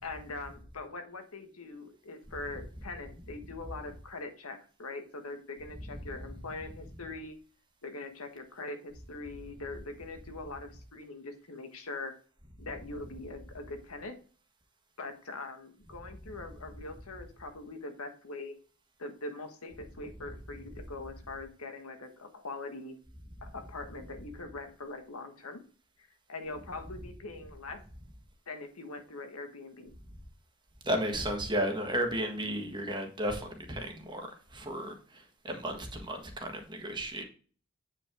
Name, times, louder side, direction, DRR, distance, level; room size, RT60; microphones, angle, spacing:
voice 1, 0.0-7.4 7.8-12.1 12.6-14.2 15.0-18.6 19.0-22.9 23.4-25.6 26.3-27.8 28.5-29.9, left 3 dB, 90° left, 1.6 m, -42 dB
voice 2, 30.8-37.2, equal, 20° right, 1.5 m, -34 dB
8.6 x 5.4 x 3.7 m
head